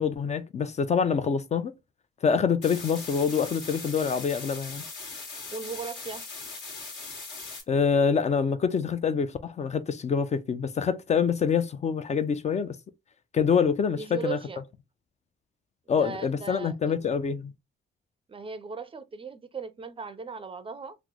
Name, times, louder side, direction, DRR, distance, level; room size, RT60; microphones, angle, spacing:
voice 1, 0.0-1.7 2.2-4.8 7.7-12.7 13.3-14.4 15.9-17.5, left 6 dB, 35° left, 0.4 m, -26 dB
sound 1, 2.6-7.6, left 4 dB, 65° left, 1.4 m, -40 dB
voice 2, 5.5-6.2 13.9-14.6 15.9-17.0 18.3-21.0, right 5 dB, 25° right, 0.4 m, -38 dB
3.0 x 2.0 x 3.6 m
cardioid pair, 90°, 20 cm